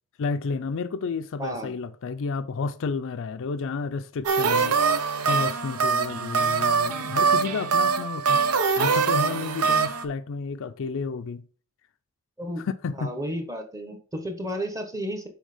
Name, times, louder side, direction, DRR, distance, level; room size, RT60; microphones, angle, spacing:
voice 1, 0.2-8.4 8.8-11.4 12.6-13.1, left 4 dB, 60° left, 0.4 m, -31 dB
voice 2, 1.4-1.7 12.4-12.6 13.0-15.3, equal, 15° right, 1.1 m, -32 dB
sound 1, 4.2-10.0, right 5 dB, 85° right, 0.7 m, -23 dB
6.4 x 4.2 x 4.9 m
head